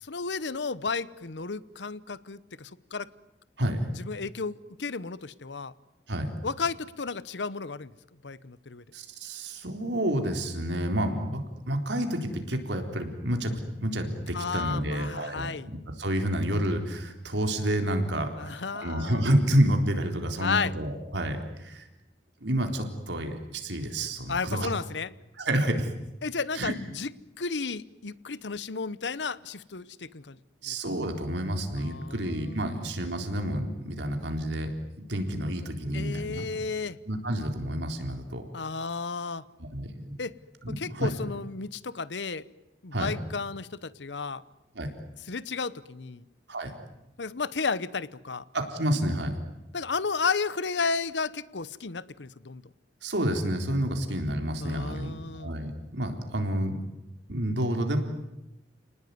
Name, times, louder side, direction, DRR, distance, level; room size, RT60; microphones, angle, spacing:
voice 1, 0.0-3.1 4.0-5.7 6.4-7.9 8.2-8.8 14.3-15.7 18.4-19.2 20.4-20.7 24.3-25.1 26.2-27.1 27.4-30.4 30.6-30.7 31.8-32.6 35.9-37.0 38.5-39.4 40.2-40.4 40.7-42.4 42.8-44.4 45.3-46.2 47.2-48.4 49.7-52.6 54.6-55.5, left 4 dB, 85° left, 18 dB, 0.9 m, -33 dB
voice 2, 8.9-13.5 13.8-21.8 22.4-24.7 25.4-25.9 26.5-26.7 30.6-34.7 34.9-36.5 37.1-38.4 39.7-40.1 40.6-41.1 42.9-43.1 44.8-44.9 46.5-46.7 48.5-49.3 53.0-56.8 57.3-58.0, right 1 dB, 80° right, 5 dB, 3.9 m, -29 dB
30.0 x 19.5 x 9.5 m, 0.96 s
head